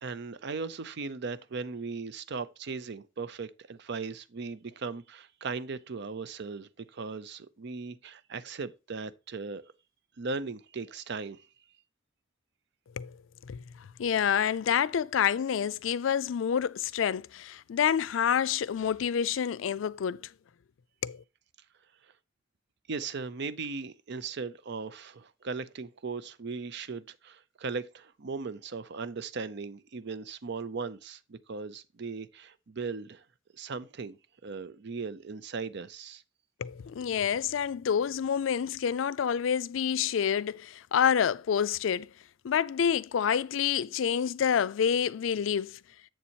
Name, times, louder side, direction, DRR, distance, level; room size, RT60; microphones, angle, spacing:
voice 1, 0.0-9.7 10.2-11.5 22.9-33.2 33.5-34.2 34.4-36.2, right 4 dB, 60° right, 0.6 m, -38 dB
voice 2, 14.0-20.3 21.0-21.2 36.6-42.1 42.4-45.8, left 8 dB, 85° left, 0.4 m, -28 dB
7.5 x 6.9 x 2.9 m
head